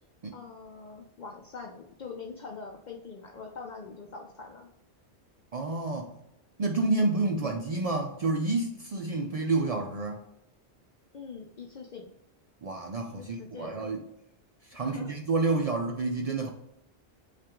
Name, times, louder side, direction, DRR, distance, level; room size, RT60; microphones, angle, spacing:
voice 1, 0.3-4.7 11.1-12.1 13.1-13.9 14.8-15.1, left 4 dB, 60° left, 1 dB, 0.5 m, -43 dB
voice 2, 5.5-6.1 6.6-10.2 12.6-14.0 14.7-16.5, right 3 dB, 70° right, 2 dB, 0.3 m, -29 dB
5.7 x 2.5 x 3.5 m, 0.79 s
omnidirectional pair, 1.2 m